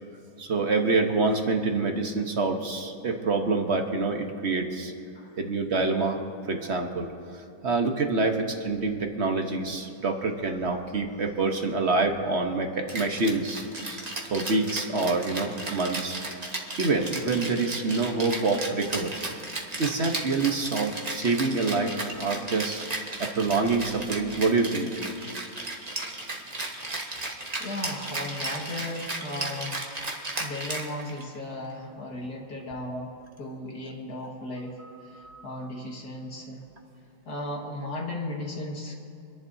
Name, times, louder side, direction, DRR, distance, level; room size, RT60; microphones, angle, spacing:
voice 1, 0.4-4.9 5.4-6.2 6.5-7.1 7.3-14.0 14.3-16.2 16.8-19.1 19.8-22.8 23.2-25.0 32.9-33.0 34.8-35.4, right 3 dB, 45° right, 4 dB, 1.0 m, -26 dB
Rattle (instrument), 12.9-31.4, right 2 dB, 25° right, 1.1 m, -35 dB
voice 2, 27.6-29.9 30.4-33.1 33.4-34.8 35.0-36.6 37.3-39.0, left 1 dB, 50° left, -1 dB, 2.2 m, -36 dB
27.5 x 11.0 x 2.7 m, 2.7 s
omnidirectional pair, 2.2 m